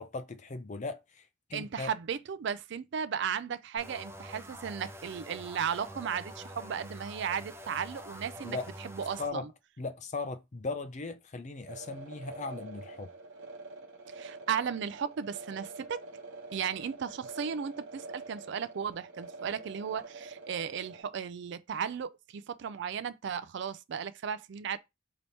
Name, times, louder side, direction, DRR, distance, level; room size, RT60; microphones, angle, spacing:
voice 1, 0.0-1.9 8.4-8.7 9.2-9.5 9.8-13.1, left 3 dB, 40° left, 0.5 m, -38 dB
voice 2, 1.5-8.6 8.8-9.4 14.1-16.0 16.5-24.8, right 7 dB, 65° right, 0.4 m, -35 dB
sound 1, 3.8-9.3, equal, 15° right, 0.6 m, -46 dB
sound 2, 11.7-21.0, right 3 dB, 85° right, 1.0 m, -46 dB
3.3 x 2.9 x 4.1 m
head